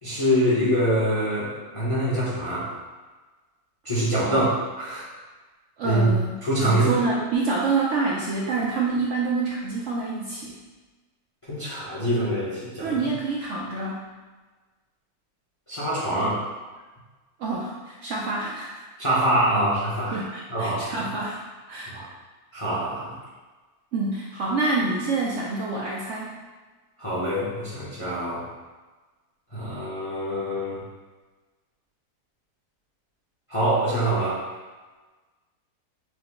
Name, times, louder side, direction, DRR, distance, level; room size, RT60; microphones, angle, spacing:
voice 1, 0.0-2.7 3.8-4.5 4.8-5.1 5.8-6.1 6.4-7.0 11.5-12.9 15.7-16.4 19.0-21.1 21.9-22.1 22.5-23.1 27.0-28.4 29.5-30.8 33.5-34.4, right 1 dB, 30° left, -8 dB, 0.7 m, -25 dB
voice 2, 5.8-10.5 12.8-14.0 16.2-16.3 17.4-18.8 20.1-21.4 21.7-21.9 23.9-26.3, right 3 dB, 70° right, -3 dB, 0.7 m, -27 dB
5.8 x 2.0 x 3.4 m, 1.3 s
omnidirectional pair, 1.7 m